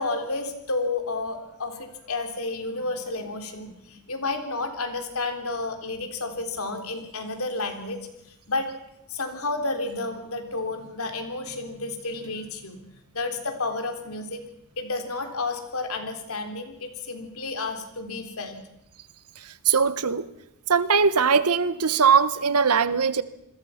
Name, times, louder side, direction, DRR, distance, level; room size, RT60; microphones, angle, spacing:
voice 1, 0.0-8.0 8.5-8.7 9.1-12.8 13.1-14.4 14.8-18.6, left 3 dB, 70° left, 6 dB, 3.6 m, -31 dB
voice 2, 19.6-20.2 20.7-23.2, right 6 dB, 90° right, 14 dB, 1.2 m, -20 dB
28.0 x 21.5 x 5.8 m, 0.82 s
head